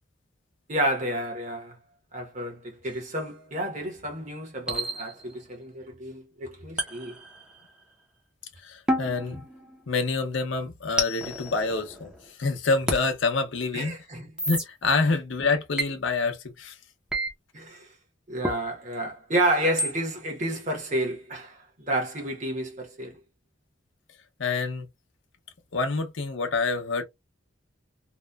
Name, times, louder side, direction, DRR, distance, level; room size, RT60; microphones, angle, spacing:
voice 1, 0.7-1.8 2.1-7.2 13.7-14.3 17.5-17.9 18.3-23.2, right 1 dB, 40° right, 0.9 m, -30 dB
sound 1, 2.8-3.0 4.7-5.4 6.8-7.8 8.9-10.2 11.0-12.3 12.9-13.1 14.4-14.7 15.8-15.9 17.1-17.3 18.4-18.6 19.8-20.0, equal, 5° right, 0.6 m, -31 dB
voice 2, 8.6-9.4 9.9-12.1 12.4-13.9 14.5-16.8 24.4-24.9 25.7-27.0, left 4 dB, 70° left, 0.7 m, -27 dB
2.9 x 2.1 x 2.2 m
head